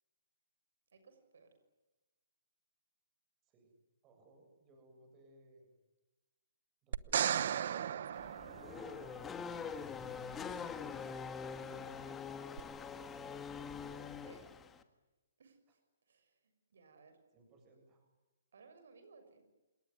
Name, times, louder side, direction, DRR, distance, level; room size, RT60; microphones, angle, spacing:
voice 1, 0.9-1.5 10.1-12.2 13.8-14.5 15.4-15.8 16.1-17.2 18.5-19.4, right 4 dB, 75° right, 8 dB, 6.4 m, -61 dB
voice 2, 4.0-5.7 6.8-8.3 13.0-13.1 17.3-18.0, right 2 dB, 20° right, 3 dB, 7.7 m, -62 dB
sound 1, 6.9-9.2 12.6-12.7, right 9 dB, 55° right, 1.0 m, -35 dB
Race car auto racing / Accelerating revving vroom, 8.1-14.8, left 6 dB, 10° left, 1.6 m, -44 dB
28.0 x 18.5 x 9.8 m, 1.1 s
hypercardioid pair, 160°, 0 cm